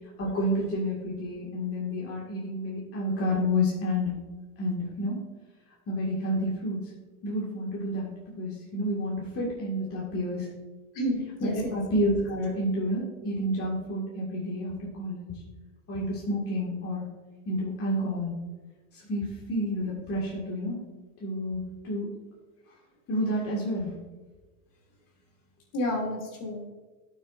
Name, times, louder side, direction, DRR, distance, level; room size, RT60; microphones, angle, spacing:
voice 1, 0.2-4.1 4.6-5.2 5.9-6.9 7.2-10.5 11.4-15.3 15.9-17.0 17.5-18.3 18.9-20.8 21.2-22.1 23.1-23.9, equal, 30° left, -5 dB, 2.1 m, -30 dB
voice 2, 10.9-11.8 25.7-26.7, left 1 dB, 45° left, 0 dB, 2.7 m, -30 dB
11.5 x 6.5 x 2.6 m, 1.2 s
hypercardioid pair, 105°, 45 cm